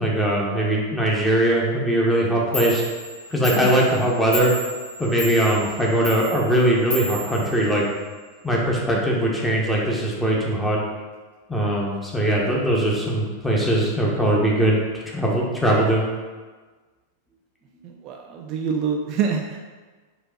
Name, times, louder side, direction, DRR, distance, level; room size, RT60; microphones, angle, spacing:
voice 1, 0.0-2.8 3.3-4.5 5.0-7.9 8.4-10.8 11.5-16.0 18.3-18.4, right 1 dB, 5° left, -3 dB, 0.9 m, -21 dB
Clock, 2.2-2.3 2.5-8.2, left 1 dB, 75° left, 1.2 m, -33 dB
voice 2, 17.8-19.6, right 6 dB, 40° right, 1 dB, 0.3 m, -26 dB
4.4 x 2.4 x 3.7 m, 1.4 s
figure-of-eight pair, 90°, 0 cm